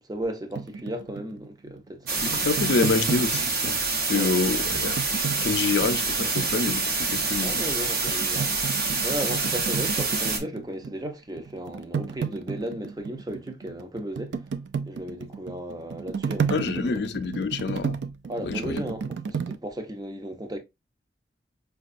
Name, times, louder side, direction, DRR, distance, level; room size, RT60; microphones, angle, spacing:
voice 1, 0.1-2.2 4.1-4.3 7.4-14.4 14.9-17.0 18.3-20.6, right 1 dB, 20° right, 0.6 m, -35 dB
sound 1, 0.5-4.0 4.7-7.4 7.8-11.1 11.3-19.6, right 6 dB, 80° right, 0.4 m, -33 dB
sound 2, 2.1-10.4, right 4 dB, 60° right, 0.9 m, -26 dB
voice 2, 2.2-3.8 4.1-7.6 16.5-18.0 18.4-18.8, left 4 dB, 70° left, 0.5 m, -27 dB
5.0 x 2.3 x 2.5 m
head